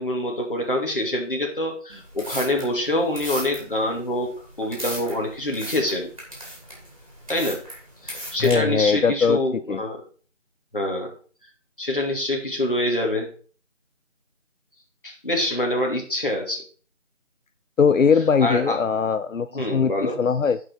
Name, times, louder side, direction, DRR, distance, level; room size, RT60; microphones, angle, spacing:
voice 1, 0.0-6.1 7.3-7.6 8.0-10.0 10.7-11.1 11.8-13.3 15.0-16.6 18.4-18.8 19.5-20.2, left 1 dB, 45° left, 0 dB, 2.7 m, -25 dB
sound 1, 1.9-8.5, equal, 25° right, 3.1 m, -37 dB
voice 2, 8.4-9.8 17.8-19.9 20.2-20.6, left 6 dB, 85° left, 12 dB, 0.7 m, -20 dB
11.0 x 5.6 x 4.8 m, 0.41 s
figure-of-eight pair, 180°, 38 cm